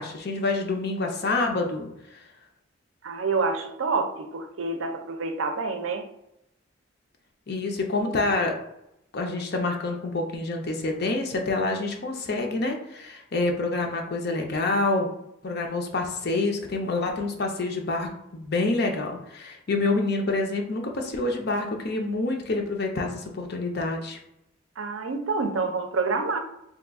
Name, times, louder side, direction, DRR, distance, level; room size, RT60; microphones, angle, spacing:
voice 1, 0.0-1.9 7.5-8.6 9.1-15.1 15.4-24.2, left 2 dB, 55° left, 2 dB, 0.6 m, -27 dB
voice 2, 3.0-6.1 24.8-26.4, right 4 dB, 85° right, 6 dB, 0.5 m, -27 dB
2.9 x 2.3 x 3.5 m, 0.82 s
head